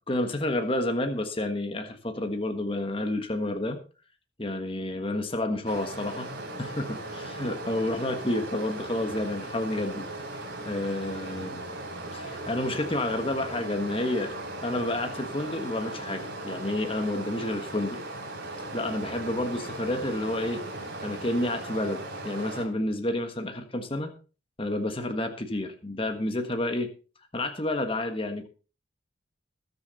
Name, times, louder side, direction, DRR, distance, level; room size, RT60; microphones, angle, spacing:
voice 1, 0.1-3.8 4.4-6.3 6.6-10.1 10.6-11.6 12.1-14.3 14.6-18.0 18.7-20.6 21.0-24.1 24.6-26.9 27.3-28.5, left 1 dB, 25° left, 6 dB, 1.4 m, -30 dB
Stream, 5.7-22.7, right 2 dB, 55° right, 3.9 m, -38 dB
20.5 x 7.0 x 4.1 m, 0.35 s
head